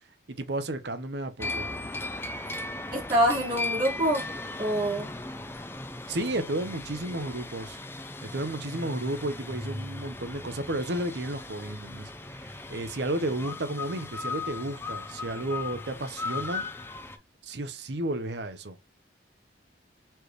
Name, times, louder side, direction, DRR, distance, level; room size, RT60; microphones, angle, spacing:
voice 1, 0.3-1.9 6.1-7.8 8.3-16.7 17.4-18.8, right 1 dB, 65° right, 0.7 m, -33 dB
sound 1, 1.4-17.2, left 3 dB, 10° left, 0.4 m, -37 dB
voice 2, 2.9-4.3 4.6-5.1, right 1 dB, 25° right, 1.8 m, -25 dB
4.4 x 3.3 x 3.1 m
head